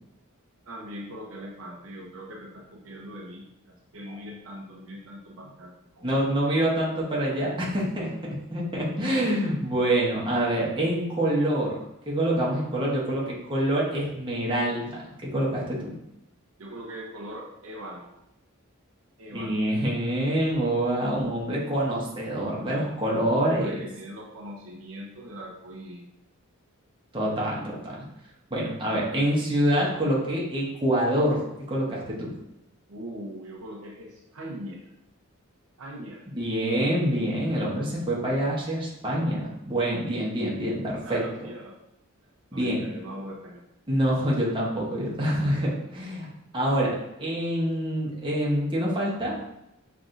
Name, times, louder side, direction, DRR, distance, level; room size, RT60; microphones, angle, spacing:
voice 1, 0.7-6.1 16.6-18.1 19.2-19.7 22.6-23.0 23.3-26.0 32.9-34.9 35.8-36.3 41.0-41.7 42.5-43.6, equal, 65° right, -2 dB, 0.8 m, -41 dB
voice 2, 6.0-8.1 8.5-15.0 15.3-15.9 19.3-23.7 27.1-27.9 28.5-32.3 36.3-41.2 42.5-42.8 43.9-46.3 46.5-46.9 47.2-49.3, right 1 dB, 20° right, -5 dB, 1.1 m, -26 dB
6.0 x 3.4 x 2.6 m, 0.85 s
head